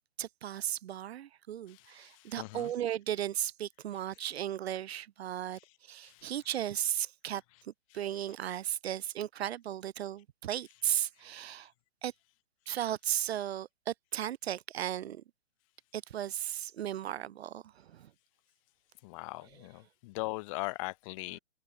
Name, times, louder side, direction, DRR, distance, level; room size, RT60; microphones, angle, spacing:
voice 1, 0.2-11.7 12.0-12.1 12.7-15.2 15.9-18.1, right 11 dB, 55° right, 1.9 m, -36 dB
voice 2, 1.7-2.7 6.1-6.3 19.0-21.4, left 25 dB, 25° left, 0.7 m, -40 dB
hypercardioid pair, 130°, 38 cm